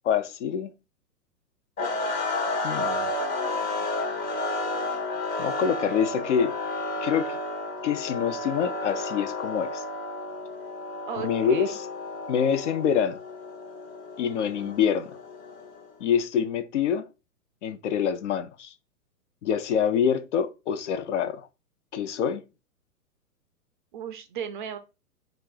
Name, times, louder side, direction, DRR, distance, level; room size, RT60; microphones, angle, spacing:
voice 1, 0.0-0.7 2.6-3.1 5.4-6.5 7.0-7.4 7.8-9.8 11.2-11.8 12.3-13.2 14.2-15.2 16.0-17.1 17.6-18.7 19.4-21.5 21.9-22.4, left 8 dB, 50° left, 0.6 m, -26 dB
sound 1, 1.8-15.9, left 2 dB, 20° left, 0.9 m, -32 dB
voice 2, 11.1-11.8 14.6-15.0 23.9-24.8, right 8 dB, 35° right, 0.5 m, -36 dB
4.3 x 2.5 x 4.8 m
figure-of-eight pair, 110°, 46 cm